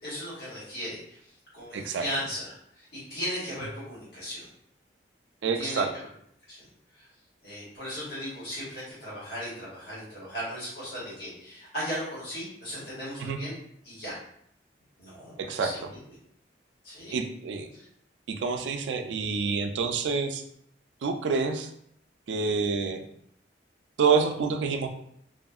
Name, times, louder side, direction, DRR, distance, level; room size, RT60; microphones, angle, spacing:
voice 1, 0.0-1.2 1.5-4.5 5.5-5.8 6.5-6.6 7.0-7.1 7.4-13.5 13.8-14.1 15.0-15.8 16.8-17.1 17.7-17.9, equal, 65° left, -8 dB, 1.4 m, -37 dB
voice 2, 1.7-2.1 5.4-5.9 13.2-13.4 15.4-15.7 17.1-17.7 18.3-20.4 21.0-21.7 22.3-23.0 24.0-24.9, right 5 dB, 85° right, 6 dB, 0.3 m, -27 dB
2.7 x 2.4 x 2.3 m, 0.70 s
head